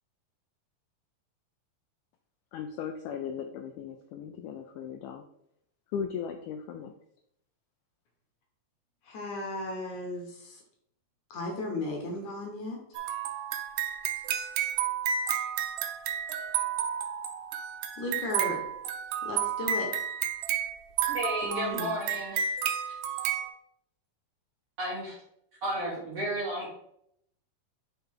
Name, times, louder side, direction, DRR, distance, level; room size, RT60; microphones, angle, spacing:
voice 1, 2.5-5.2 5.9-6.9, left 7 dB, 80° left, 5 dB, 1.8 m, -37 dB
voice 2, 9.1-10.6 11.3-12.8 18.0-18.6 19.2-19.9 21.4-22.0, left 2 dB, 65° left, 1 dB, 2.1 m, -35 dB
sound 1, 12.9-23.5, right 8 dB, 85° right, 2.3 m, -31 dB
voice 3, 21.1-22.5 22.8-23.0 24.8-25.1 25.6-26.7, right 1 dB, 55° right, -5 dB, 1.6 m, -33 dB
6.7 x 3.2 x 4.6 m, 0.74 s
omnidirectional pair, 4.0 m